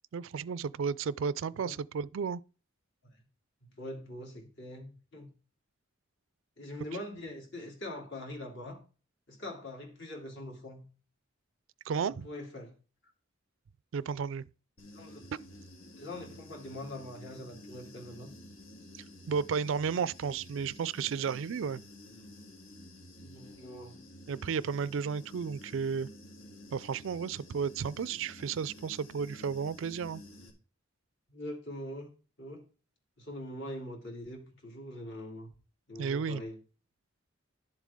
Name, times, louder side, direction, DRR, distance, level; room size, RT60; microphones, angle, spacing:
voice 1, 0.1-2.4 11.9-12.3 13.9-14.4 15.3-15.4 18.9-21.8 24.3-26.1 26.7-30.2 36.0-36.4, right 6 dB, 65° right, 0.3 m, -33 dB
voice 2, 3.6-5.3 6.6-8.8 9.3-10.8 12.0-12.7 14.9-15.2 16.0-18.3 23.2-24.0 31.3-32.1 32.4-32.6 33.2-35.5 35.9-36.6, left 1 dB, 60° left, 2.9 m, -43 dB
Human voice / Buzz, 14.8-30.5, left 1 dB, 75° left, 2.0 m, -51 dB
11.5 x 7.4 x 3.6 m
head